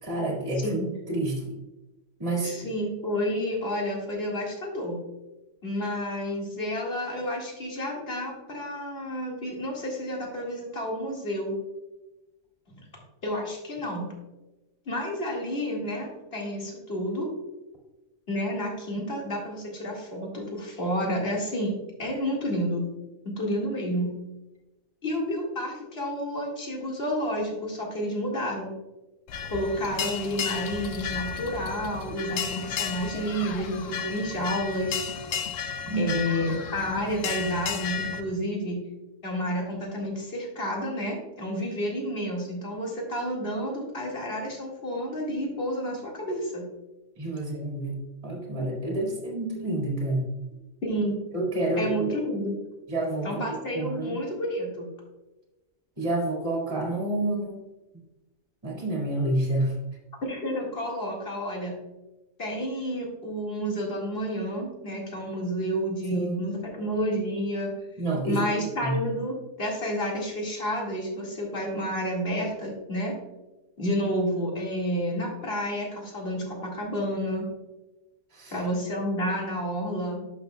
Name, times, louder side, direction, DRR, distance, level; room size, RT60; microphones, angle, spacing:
voice 1, 0.0-0.8 1.1-1.5 2.2-2.6 35.9-36.2 47.2-48.0 48.2-50.3 51.3-52.1 52.9-53.4 53.7-54.2 56.0-57.6 58.6-59.7 66.1-66.6 68.0-68.4 68.8-68.9 78.3-78.5, right 2 dB, 25° right, -2 dB, 1.9 m, -28 dB
voice 2, 2.4-5.0 5.6-11.5 13.2-14.1 14.9-17.3 18.3-22.9 23.2-24.1 25.0-28.7 29.5-35.1 36.0-38.8 39.2-46.7 48.8-48.9 50.8-51.2 51.8-52.6 53.2-54.9 60.2-61.7 62.4-67.7 68.3-73.1 73.8-77.5 78.5-80.2, equal, 45° left, -2 dB, 2.2 m, -30 dB
sound 1, 29.3-38.2, left 7 dB, 70° left, 1.0 m, -33 dB
11.0 x 6.1 x 2.3 m, 1.0 s
omnidirectional pair, 1.5 m